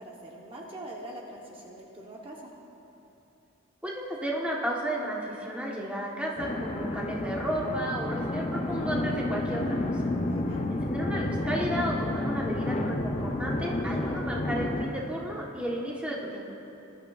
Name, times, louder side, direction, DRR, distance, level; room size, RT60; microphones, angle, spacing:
voice 1, 0.0-2.5 10.3-10.6, right 1 dB, 25° right, -2 dB, 1.0 m, -43 dB
voice 2, 3.8-9.8 10.7-16.4, right 1 dB, 5° right, -3 dB, 1.1 m, -33 dB
sound 1, 6.4-14.9, left 2 dB, 30° left, 0.6 m, -30 dB
20.0 x 11.5 x 2.4 m, 3.0 s
head